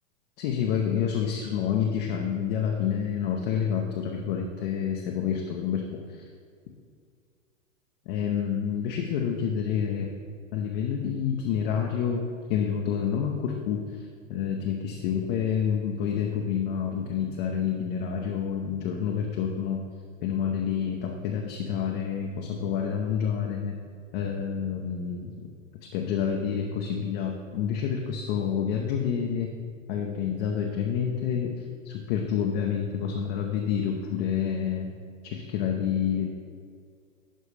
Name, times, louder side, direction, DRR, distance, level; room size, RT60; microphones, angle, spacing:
voice 1, 0.4-6.2 8.1-10.1 10.5-19.8 20.2-23.8 24.1-25.3 25.8-29.5 29.9-31.5 31.8-34.9 35.2-36.3, left 8 dB, 45° left, 1 dB, 0.8 m, -28 dB
12.0 x 4.2 x 3.3 m, 2.1 s
hypercardioid pair, 105°, 40 cm